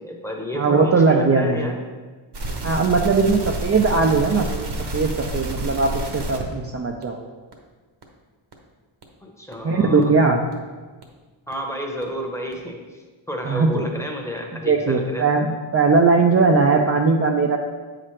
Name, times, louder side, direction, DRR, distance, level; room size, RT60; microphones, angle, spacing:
voice 1, 0.0-1.8 9.2-10.1 11.5-15.2, equal, 5° left, 1 dB, 1.0 m, -31 dB
voice 2, 0.5-1.7 2.6-7.3 9.6-10.4 13.4-13.9 14.7-17.6, right 4 dB, 30° right, 1 dB, 0.5 m, -19 dB
sound 1, 2.3-6.5 7.0-7.1 7.5-7.6 8.0-8.1 8.5-8.6 9.0-9.1 9.5-9.6 10.0-10.1 10.5-10.6 11.0-11.1 11.5-11.6 12.0-12.1 12.5-12.6, right 1 dB, 55° right, 1.1 m, -29 dB
7.8 x 5.9 x 3.2 m, 1.4 s
wide cardioid pair, 100°, 48 cm